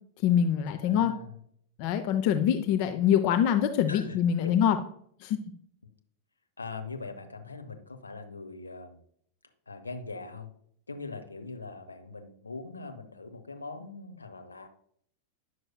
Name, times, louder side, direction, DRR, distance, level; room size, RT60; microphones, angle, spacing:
voice 1, 0.2-1.1 1.8-4.8 5.2-5.4, left 9 dB, 45° left, 8 dB, 0.5 m, -24 dB
voice 2, 0.8-1.4 3.9-4.5 6.6-9.0 9.7-10.5 10.9-14.7, left 3 dB, 80° left, 6 dB, 0.8 m, -41 dB
9.6 x 6.2 x 2.3 m, 0.65 s
figure-of-eight pair, 90°, 0 cm